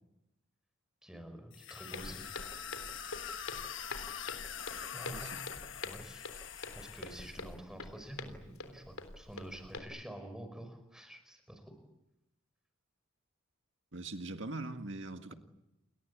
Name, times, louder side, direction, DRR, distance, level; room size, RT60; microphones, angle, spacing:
voice 1, 1.0-2.2 4.9-5.4 5.8-6.3 6.7-11.8 15.3-15.4, right 1 dB, 5° right, 5.2 m, -48 dB
sound 1, 1.5-7.5, left 8 dB, 60° left, 1.3 m, -44 dB
Walk footsteps, 1.9-9.8, left 3 dB, 90° left, 3.6 m, -46 dB
voice 2, 5.1-5.4 13.9-15.3, right 2 dB, 60° right, 1.9 m, -41 dB
29.0 x 22.5 x 8.4 m
head